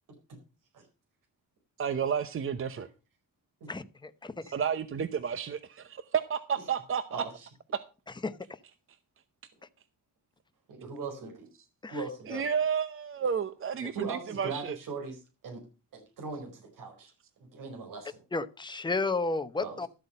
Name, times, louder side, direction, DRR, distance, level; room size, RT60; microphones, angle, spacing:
voice 1, 1.8-2.9 4.4-7.2 12.3-14.8, right 7 dB, 40° right, 0.8 m, -31 dB
voice 2, 3.7-4.5 8.2-8.6 11.8-12.0 12.3-12.4 13.8-13.9 18.3-19.9, left 3 dB, 15° left, 0.9 m, -33 dB
voice 3, 10.7-11.5 11.9-12.3 13.9-15.6 15.9-17.1 17.4-18.2 19.6-19.8, right 4 dB, 70° right, 4.6 m, -39 dB
13.0 x 8.1 x 5.4 m
cardioid pair, 110°, 33 cm